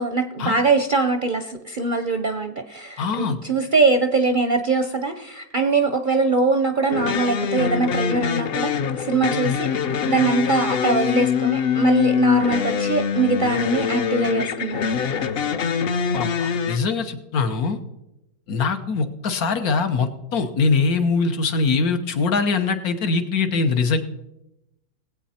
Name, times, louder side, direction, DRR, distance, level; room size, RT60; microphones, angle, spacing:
voice 1, 0.0-15.2, right 3 dB, 50° right, 7 dB, 0.6 m, -22 dB
voice 2, 3.0-3.4 16.1-17.8 18.5-24.0, left 4 dB, 75° left, 7 dB, 1.5 m, -22 dB
sound 1, 6.9-16.8, left 7 dB, 55° left, 0.7 m, -23 dB
20.0 x 8.2 x 4.3 m, 0.91 s
omnidirectional pair, 1.6 m